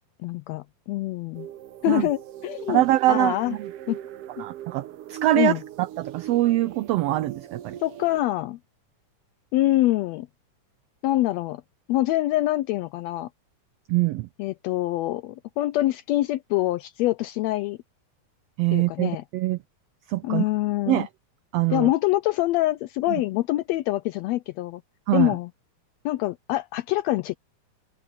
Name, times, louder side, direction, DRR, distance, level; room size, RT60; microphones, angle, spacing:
voice 1, 0.2-1.5 1.8-2.8 3.1-3.6 3.9-4.0 4.4-4.5 5.4-5.6 7.8-8.6 9.5-10.3 11.0-11.6 11.9-13.3 14.4-17.8 18.7-19.2 20.2-21.1 21.7-24.8 25.1-25.5 26.0-27.4, left 16 dB, 80° left, 1.5 m, -25 dB
sound 1, 1.3-8.2, right 11 dB, 70° right, 1.4 m, -40 dB
voice 2, 2.7-3.7 4.4-7.8 13.9-14.3 18.6-19.6 20.1-20.4 20.9-21.1 21.5-21.9 23.1-23.2 25.1-25.3, right 16 dB, 90° right, 1.4 m, -23 dB
omnidirectional pair, 3.5 m